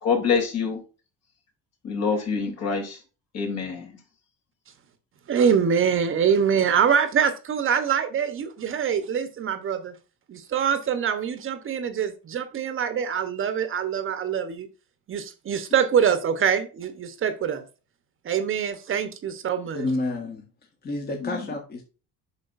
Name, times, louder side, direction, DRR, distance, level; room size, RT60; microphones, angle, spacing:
voice 1, 0.0-0.8 1.8-3.0 3.3-4.0 21.2-21.4, left 5 dB, 50° left, 2 dB, 3.2 m, -26 dB
voice 2, 5.3-9.9 10.3-14.7 15.1-17.6 18.2-19.8, right 7 dB, 40° right, 10 dB, 1.0 m, -24 dB
voice 3, 19.7-20.5 20.8-21.8, left 2 dB, 30° left, 1 dB, 1.6 m, -29 dB
8.8 x 6.2 x 2.6 m, 0.33 s
cardioid pair, 135°, 33 cm